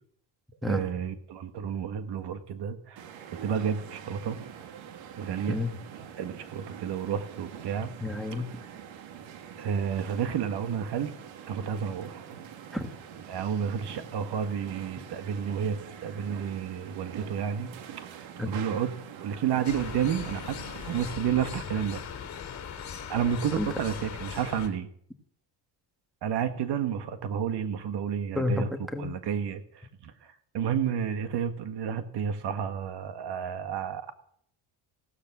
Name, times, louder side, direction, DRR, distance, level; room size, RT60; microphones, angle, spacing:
voice 1, 0.6-4.4 5.2-5.6 6.2-7.9 9.6-11.1 11.5-12.2 13.3-17.7 18.1-18.9 19.2-20.6 20.8-22.0 23.1-24.9 26.2-28.7 29.0-30.1 30.5-34.1, right 8 dB, 60° right, 9 dB, 1.7 m, -31 dB
sound 1, 3.0-21.2, right 8 dB, 80° right, 2.2 m, -45 dB
voice 2, 8.0-8.5 12.7-12.9 18.4-18.5 23.6-23.7 28.4-29.1, left 2 dB, ahead, 7 dB, 1.8 m, -30 dB
sound 2, 19.6-24.7, left 7 dB, 35° left, 3.5 m, -39 dB
17.0 x 12.5 x 6.1 m, 0.64 s
cardioid pair, 130°, 45 cm